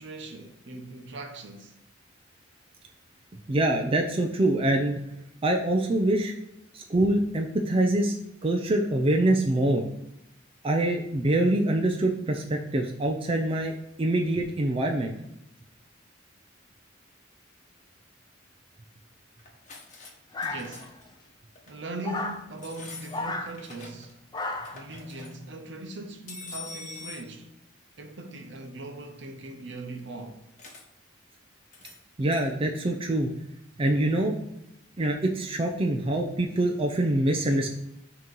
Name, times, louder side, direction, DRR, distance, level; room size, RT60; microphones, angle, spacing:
voice 1, 0.0-1.7 20.4-20.9 21.7-24.2 24.7-27.6 28.0-30.4, right 2 dB, 65° right, 0.8 m, -40 dB
voice 2, 3.5-5.0 5.4-6.3 6.7-8.1 8.4-9.8 10.6-15.1 32.2-33.3 33.8-34.4 35.0-37.7, right 1 dB, 30° right, 0.5 m, -25 dB
sound 1, 19.4-20.1 20.4-21.0 21.6-21.8 22.6-24.1 24.4-25.3 26.3-27.3 30.6-30.8 31.7-32.0 32.3-32.5, left 4 dB, 40° left, 1.1 m, -44 dB
sound 2, 20.3-21.1 22.0-22.4 23.1-23.5 24.3-24.8, left 2 dB, 20° left, 0.5 m, -33 dB
6.2 x 3.0 x 5.3 m
head